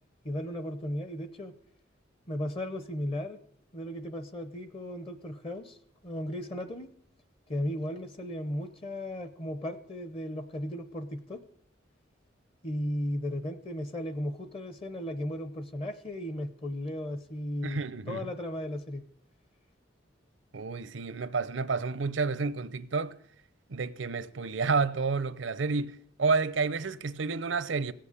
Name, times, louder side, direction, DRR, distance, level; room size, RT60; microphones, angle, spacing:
voice 1, 0.2-1.5 2.3-3.4 3.7-5.8 6.0-6.9 7.5-11.4 12.6-17.8 18.1-19.0, left 1 dB, 30° left, 0.7 m, -35 dB
voice 2, 17.6-18.3 20.5-23.2 23.7-27.9, right 4 dB, 80° right, 0.7 m, -30 dB
16.5 x 7.7 x 8.3 m
head